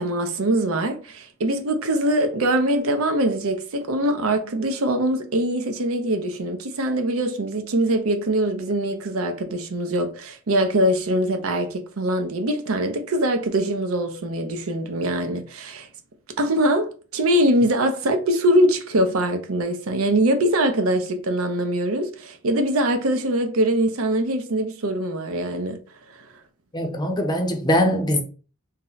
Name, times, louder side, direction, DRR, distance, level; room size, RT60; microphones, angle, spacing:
voice 1, 0.0-15.9 16.4-25.8, right 1 dB, 70° right, 0.6 m, -23 dB
voice 2, 26.7-28.2, equal, 20° left, 0.6 m, -22 dB
2.8 x 2.1 x 3.8 m
head